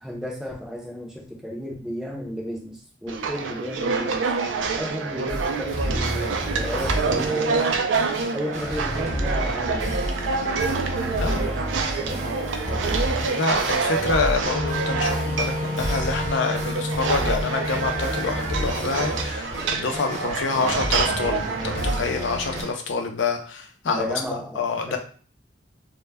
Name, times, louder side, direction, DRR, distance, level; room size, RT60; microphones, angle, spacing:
voice 1, 0.0-4.3 4.8-7.7 8.3-10.0 11.0-13.4 23.8-25.0, equal, 5° right, -1 dB, 0.5 m, -34 dB
sound 1, 3.1-22.7, right 4 dB, 90° right, 0.4 m, -27 dB
sound 2, 5.3-22.6, equal, 40° right, 0.7 m, -30 dB
voice 2, 13.2-24.1 24.6-25.0, left 4 dB, 85° left, 4 dB, 0.5 m, -27 dB
Wind instrument woodwind instrument, 14.4-19.1, left 1 dB, 50° left, 0.7 m, -31 dB
2.1 x 2.1 x 3.3 m, 0.42 s
head